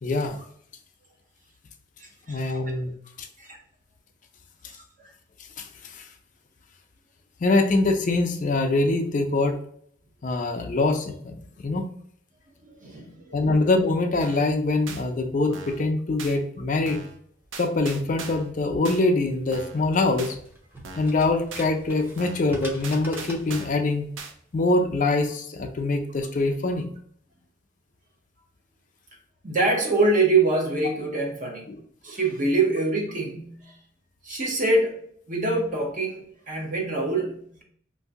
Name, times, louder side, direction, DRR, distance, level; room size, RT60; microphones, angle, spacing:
voice 1, 0.0-0.4 2.3-2.9 5.6-6.1 7.4-9.6 10.2-11.9 13.3-17.0 17.6-20.4 21.0-24.1 24.5-26.9 31.7-31.8, left 2 dB, 40° left, 4 dB, 0.4 m, -24 dB
voice 2, 2.0-2.8 3.4-3.6 12.6-13.4 26.7-26.8 29.4-31.7 32.0-33.7 34.2-34.9 35.3-37.6, right 3 dB, 45° right, 1 dB, 0.8 m, -25 dB
sound 1, 14.2-14.5 14.9-15.0 15.5-15.9 16.2-16.4 16.9-17.2 17.5-18.5 18.8-19.0 19.5-19.8 20.2-20.3 20.8-21.2 21.5-21.7 22.2-22.5 22.8-23.8 24.2-24.3, right 4 dB, 90° right, 0.5 m, -39 dB
sound 2, 19.3-24.7, equal, 10° right, 0.7 m, -44 dB
2.7 x 2.6 x 3.5 m, 0.62 s
head